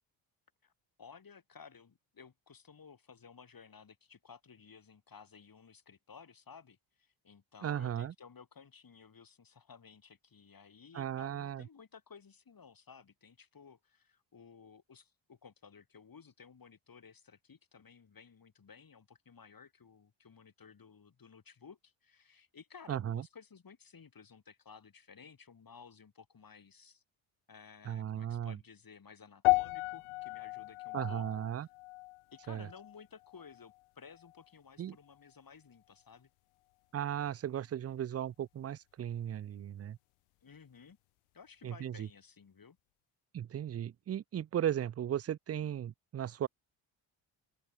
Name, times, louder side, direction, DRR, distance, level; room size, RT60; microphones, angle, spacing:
voice 1, 1.0-27.0 27.5-31.3 31.6-31.7 32.3-36.3 40.4-41.0 41.3-42.8, left 6 dB, 45° left, 5.4 m, -56 dB
voice 2, 7.6-8.1 10.9-11.6 22.9-23.2 27.9-28.6 30.9-31.7 32.5-32.7 34.8-35.0 36.9-40.0 41.6-42.1 43.3-46.5, right 10 dB, 30° right, 0.5 m, -36 dB
sound 1, 29.4-33.8 34.1-34.5 35.1-35.2, left 24 dB, 80° left, 0.5 m, -35 dB
open air
supercardioid pair, 60°, 50 cm